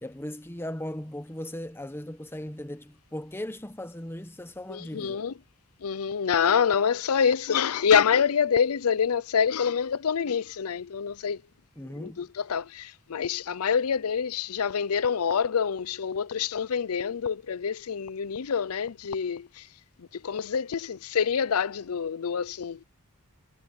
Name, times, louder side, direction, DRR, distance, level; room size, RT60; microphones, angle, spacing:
voice 1, 0.0-5.2 11.8-12.3, left 1 dB, 10° left, 1.0 m, -38 dB
voice 2, 4.7-5.3 5.8-11.4 11.9-19.7 20.0-22.8, left 7 dB, 80° left, 0.5 m, -26 dB
head